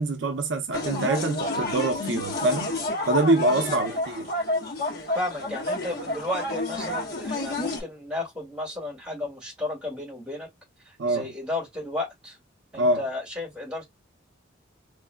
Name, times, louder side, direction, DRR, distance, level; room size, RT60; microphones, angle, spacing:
voice 1, 0.0-2.7 3.1-4.3 11.0-11.2 12.7-13.0, right 2 dB, 65° right, 0.5 m, -25 dB
sound 1, 0.7-7.8, left 2 dB, 50° left, 1.3 m, -30 dB
voice 2, 3.7-4.0 5.1-10.5 10.8-12.4 12.7-13.9, left 2 dB, 5° right, 2.0 m, -33 dB
3.6 x 3.1 x 2.2 m
head